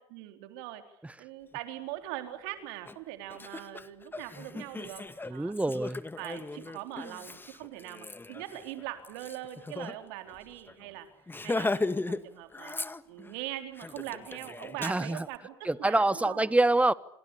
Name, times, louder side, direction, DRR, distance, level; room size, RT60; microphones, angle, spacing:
voice 1, 0.1-0.8 1.2-5.5 6.2-11.1 11.4-12.8 13.1-16.5, right 14 dB, 75° right, 3.9 m, -41 dB
Laughter, 2.9-3.0 3.3-9.9 10.3-10.4 10.7-10.9 11.3-12.2 12.5-13.3 13.8-15.2, left 3 dB, 15° left, 1.9 m, -37 dB
voice 2, 5.3-6.0 14.8-15.2 15.7-16.9, right 2 dB, 10° right, 1.4 m, -25 dB
28.5 x 26.5 x 7.1 m
hypercardioid pair, 65°, 13 cm